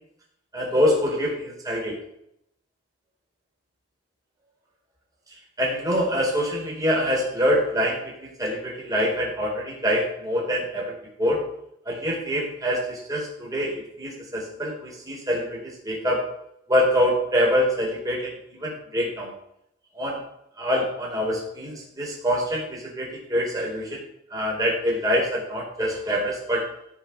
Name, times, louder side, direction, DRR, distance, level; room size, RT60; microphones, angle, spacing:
voice 1, 0.5-2.0 5.6-11.4 11.9-16.3 16.7-19.3 19.9-20.2 20.6-24.0 24.3-26.7, equal, 20° right, -3 dB, 4.3 m, -25 dB
15.5 x 5.8 x 5.9 m, 0.76 s
head